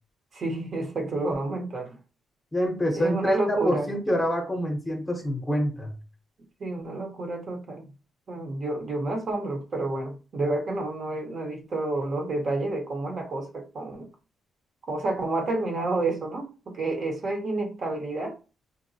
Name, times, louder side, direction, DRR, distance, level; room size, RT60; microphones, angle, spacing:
voice 1, 0.3-2.0 2.9-3.9 6.6-7.8 8.3-14.1 14.9-18.4, right 2 dB, 40° right, 3 dB, 0.7 m, -29 dB
voice 2, 2.5-5.9, equal, 10° left, 2 dB, 0.8 m, -26 dB
3.8 x 2.0 x 2.7 m, 0.32 s
cardioid pair, 140°, 0 cm